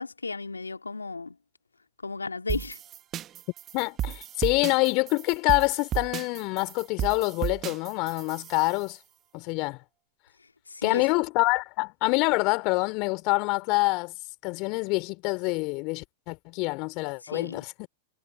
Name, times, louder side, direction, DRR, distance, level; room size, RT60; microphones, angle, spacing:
voice 1, 0.0-1.4 2.0-2.8 10.4-11.1 17.2-17.6, left 4 dB, 90° left, 2.3 m, -35 dB
sound 1, 2.5-8.8, right 11 dB, 30° right, 1.5 m, -34 dB
voice 2, 3.7-9.0 9.3-9.8 10.8-14.1 14.4-17.9, left 27 dB, 45° left, 3.6 m, -26 dB
figure-of-eight pair, 100°, 0 cm